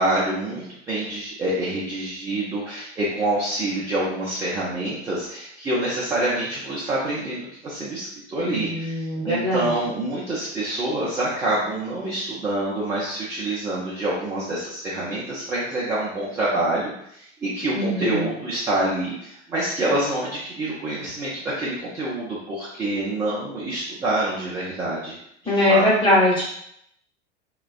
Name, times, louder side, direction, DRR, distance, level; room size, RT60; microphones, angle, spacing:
voice 1, 0.0-25.2 25.4-25.9, right 1 dB, 10° right, -8 dB, 0.4 m, -26 dB
voice 2, 8.4-9.7 17.7-18.3 25.5-26.4, left 1 dB, 15° left, -7 dB, 1.0 m, -21 dB
2.3 x 2.2 x 2.4 m, 0.72 s
figure-of-eight pair, 85°, 36 cm